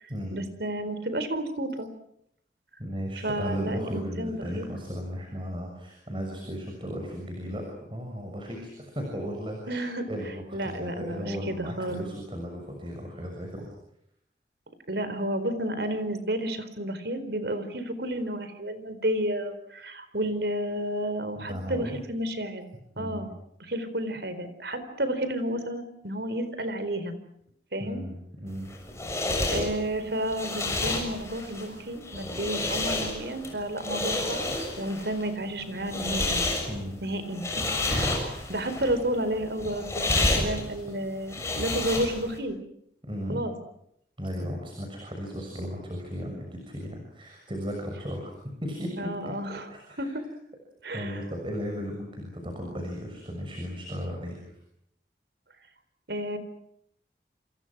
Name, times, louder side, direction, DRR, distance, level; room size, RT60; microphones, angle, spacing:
voice 1, 0.3-1.9 3.2-4.6 9.6-10.1 10.5-12.0 14.9-22.7 23.0-23.3 23.6-27.1 27.7-28.0 29.5-34.5 34.8-36.4 37.0-42.6 43.3-43.5 49.0-49.6 50.0-50.2 50.8-51.2 56.1-56.4, right 1 dB, 70° right, 11 dB, 4.3 m, -31 dB
voice 2, 2.8-13.7 21.3-22.0 23.0-23.3 27.8-28.7 36.7-37.0 40.1-40.6 43.0-43.4 44.2-48.3 48.6-49.1 49.7-50.2 50.9-54.4, equal, 30° right, 2 dB, 6.6 m, -35 dB
sound 1, 28.5-42.4, left 2 dB, 15° left, 6.7 m, -30 dB
28.5 x 28.0 x 6.2 m, 0.74 s
head